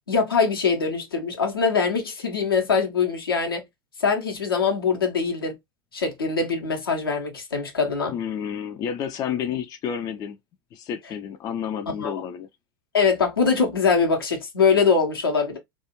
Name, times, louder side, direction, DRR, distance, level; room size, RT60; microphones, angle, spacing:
voice 1, 0.1-3.6 4.0-5.6 5.9-8.1 12.0-12.2 12.9-15.6, left 5 dB, 75° left, 0.8 m, -23 dB
voice 2, 8.1-10.4 10.7-12.5, left 8 dB, 30° left, 0.4 m, -30 dB
2.3 x 2.3 x 2.8 m
figure-of-eight pair, 80°, 12 cm